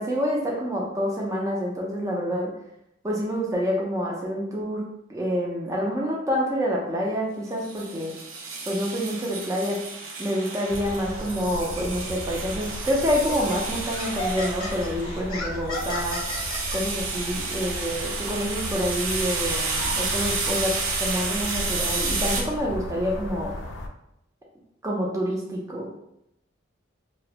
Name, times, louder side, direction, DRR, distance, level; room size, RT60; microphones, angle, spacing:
voice 1, 0.0-2.5 3.0-8.1 8.7-9.8 10.2-16.2 16.7-23.5 24.8-25.9, equal, 15° right, -3 dB, 0.3 m, -27 dB
sound 1, 7.6-22.4, right 4 dB, 80° right, 0.5 m, -31 dB
sound 2, 10.7-23.9, left 1 dB, 65° left, 0.3 m, -35 dB
Laughter, 12.3-12.5 13.1-16.8, left 1 dB, 25° left, 0.7 m, -33 dB
2.3 x 2.0 x 2.8 m, 0.80 s
head